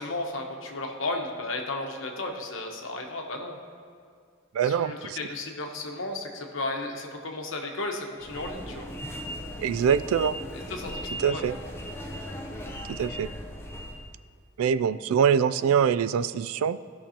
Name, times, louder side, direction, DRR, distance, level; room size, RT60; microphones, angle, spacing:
voice 1, 0.0-3.6 4.6-8.9 10.5-11.4, left 2 dB, 65° left, 2 dB, 1.1 m, -34 dB
voice 2, 4.5-5.2 9.6-10.3 11.2-11.5 12.9-13.3 14.6-16.8, right 7 dB, 90° right, 16 dB, 0.3 m, -24 dB
sound 1, 8.2-14.1, equal, 10° left, 0.6 m, -38 dB
15.5 x 6.0 x 2.9 m, 2.1 s
head